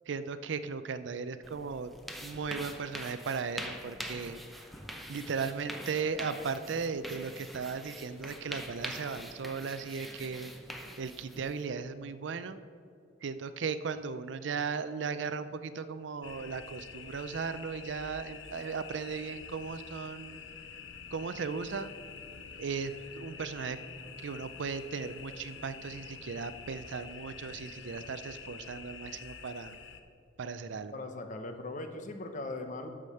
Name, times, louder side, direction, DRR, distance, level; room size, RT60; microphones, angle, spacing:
voice 1, 0.1-1.9 2.2-4.4 5.1-10.5 11.0-12.6 13.2-20.4 21.1-21.9 22.6-23.8 24.2-29.8 30.4-31.0, right 5 dB, 75° right, 12 dB, 0.5 m, -37 dB
sound 1, 1.4-11.6, equal, ahead, 0.7 m, -44 dB
sound 2, 16.2-30.0, left 6 dB, 80° left, 0.7 m, -47 dB
voice 2, 30.9-32.9, left 2 dB, 45° left, 7 dB, 0.8 m, -39 dB
12.5 x 5.1 x 5.6 m, 2.4 s
head